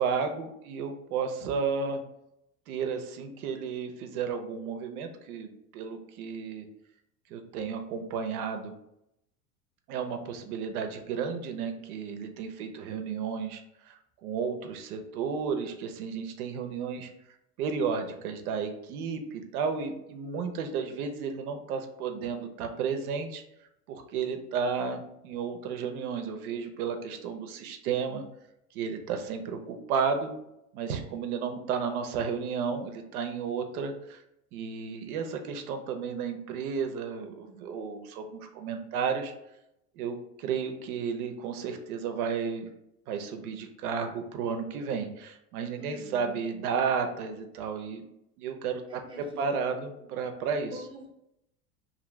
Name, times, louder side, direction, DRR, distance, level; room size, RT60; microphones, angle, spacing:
voice 1, 0.0-2.0 2.7-6.7 7.3-8.7 9.9-13.6 13.9-17.1 17.6-23.4 23.9-28.2 28.7-30.3 30.7-34.2 34.5-39.3 40.0-42.7 43.1-48.0 48.4-50.7, right 6 dB, 75° right, 6 dB, 0.6 m, -33 dB
voice 2, 45.8-46.4 48.9-49.4 50.7-51.1, equal, 10° right, -1 dB, 0.7 m, -46 dB
2.7 x 2.5 x 3.0 m, 0.82 s
hypercardioid pair, 95°, 44 cm